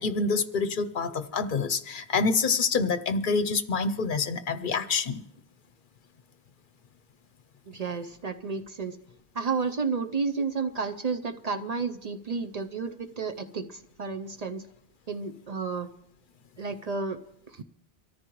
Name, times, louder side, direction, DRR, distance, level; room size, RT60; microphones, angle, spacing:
voice 1, 0.0-5.2, left 4 dB, 60° left, 11 dB, 0.8 m, -27 dB
voice 2, 7.7-9.0 9.3-14.6 15.1-15.9 16.6-17.2 17.5-17.6, right 4 dB, 45° right, 7 dB, 0.7 m, -31 dB
23.5 x 14.0 x 3.0 m, 0.77 s
omnidirectional pair, 1.0 m